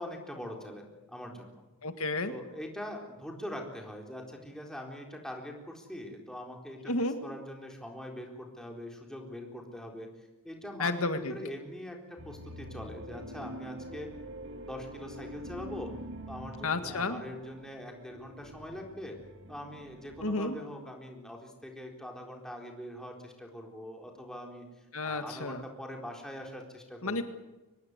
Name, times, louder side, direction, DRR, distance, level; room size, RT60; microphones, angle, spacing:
voice 1, 0.0-1.5 2.3-6.9 7.2-14.1 14.4-15.9 16.3-19.2 19.5-27.2, left 1 dB, 5° left, 1 dB, 4.0 m, -43 dB
voice 2, 1.8-2.3 6.9-7.2 10.8-11.3 16.6-17.2 20.2-20.6 24.9-25.6 27.0-27.2, left 2 dB, 75° left, 8 dB, 1.8 m, -31 dB
sound 1, 12.2-20.4, equal, 55° right, 2.1 m, -45 dB
24.5 x 20.0 x 8.1 m, 1.1 s
head